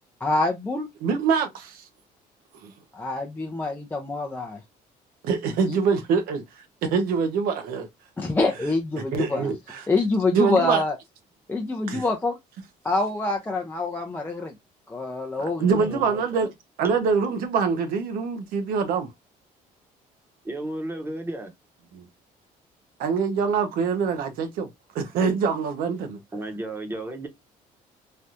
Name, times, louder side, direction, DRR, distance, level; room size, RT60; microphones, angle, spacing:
voice 1, 0.2-0.9 2.9-4.6 5.6-5.8 8.2-9.5 9.9-11.0 11.5-12.4 12.8-14.5 14.9-15.9, left 2 dB, 15° left, 0.5 m, -26 dB
voice 2, 1.0-1.8 2.6-2.7 5.2-6.4 6.8-7.9 9.1-9.8 10.3-10.8 11.9-12.0 15.4-16.5 16.8-19.1 21.9-22.0 23.0-24.7 24.9-26.2, right 5 dB, 85° right, 0.8 m, -24 dB
voice 3, 15.6-16.2 16.8-16.9 20.4-21.5 26.3-27.3, right 1 dB, 15° right, 0.9 m, -33 dB
3.3 x 2.4 x 2.7 m
cardioid pair, 120°, 15 cm